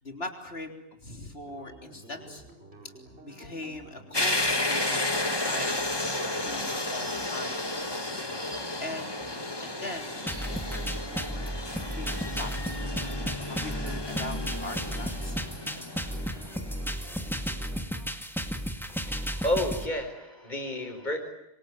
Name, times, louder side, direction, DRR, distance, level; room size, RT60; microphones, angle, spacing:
voice 1, 0.0-0.7 1.0-2.4 3.2-7.6 8.8-9.1 9.6-12.8 13.2-15.4, left 2 dB, 75° left, 4 dB, 3.9 m, -41 dB
sound 1, 1.4-18.1, right 1 dB, 90° right, 5.1 m, -51 dB
sound 2, 4.1-16.8, left 2 dB, 25° left, 1.8 m, -32 dB
sound 3, 10.3-19.9, equal, ahead, 2.1 m, -34 dB
voice 2, 18.9-21.2, left 1 dB, 45° left, 4 dB, 5.1 m, -31 dB
26.5 x 24.0 x 9.2 m, 0.89 s
omnidirectional pair, 1.1 m